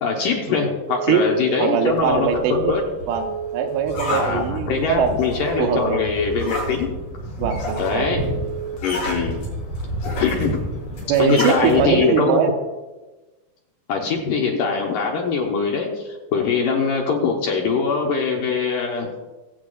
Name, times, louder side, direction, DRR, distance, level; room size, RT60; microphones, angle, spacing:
voice 1, 0.0-2.9 4.1-6.9 7.8-8.2 8.8-9.5 10.2-10.6 11.1-12.4 13.9-19.1, left 5 dB, 70° left, 0 dB, 2.2 m, -22 dB
Telephone, 0.9-2.0 3.1-4.2 5.4-6.5 7.7-8.8, right 9 dB, 70° right, 2.4 m, -31 dB
voice 2, 1.6-2.7 3.1-5.1 5.6-6.0 7.4-8.0 11.1-12.5, right 7 dB, 85° right, 3 dB, 3.2 m, -21 dB
sound 1, 1.9-12.0, equal, 90° left, 6.8 m, -30 dB
23.5 x 8.1 x 2.4 m, 1.2 s
omnidirectional pair, 4.8 m